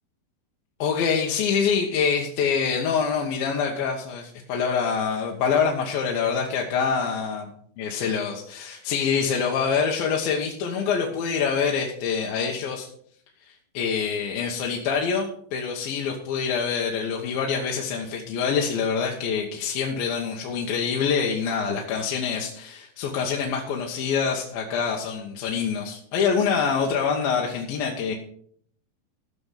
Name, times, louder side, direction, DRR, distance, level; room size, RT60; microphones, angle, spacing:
voice 1, 0.8-7.4 7.8-12.9 13.5-28.2, left 6 dB, 70° left, -1 dB, 2.9 m, -25 dB
14.5 x 6.9 x 5.8 m, 0.64 s
omnidirectional pair, 4.6 m